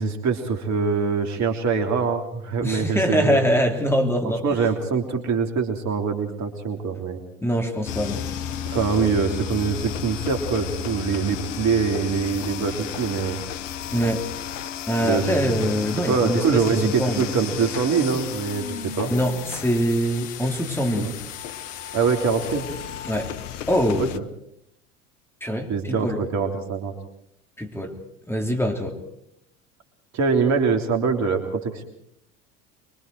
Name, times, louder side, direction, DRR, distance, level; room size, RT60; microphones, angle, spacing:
voice 1, 0.0-3.4 4.2-7.2 8.7-13.4 15.0-15.6 16.1-19.1 21.0-21.1 21.9-22.6 24.0-24.2 25.7-26.9 30.1-31.8, right 5 dB, 45° right, 4 dB, 3.3 m, -24 dB
voice 2, 2.6-4.6 7.4-8.3 13.9-14.3 14.9-17.3 19.1-21.1 23.0-23.3 23.7-24.1 25.4-26.2 27.6-27.9 28.3-29.0, equal, 5° left, 3 dB, 3.4 m, -24 dB
sound 1, 7.8-24.2, left 9 dB, 70° left, 1.1 m, -33 dB
25.0 x 23.0 x 4.7 m, 0.75 s
hypercardioid pair, 75°, 38 cm